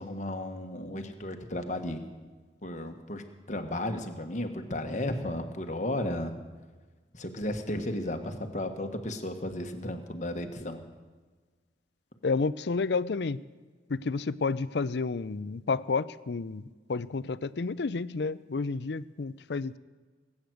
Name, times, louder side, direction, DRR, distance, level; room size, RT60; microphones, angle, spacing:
voice 1, 0.0-2.0 2.6-6.3 7.1-10.8, left 1 dB, 40° left, 5 dB, 1.4 m, -34 dB
voice 2, 12.2-13.4 13.9-16.6 16.9-19.8, left 4 dB, 70° left, 17 dB, 0.5 m, -30 dB
20.0 x 8.8 x 7.9 m, 1.4 s
head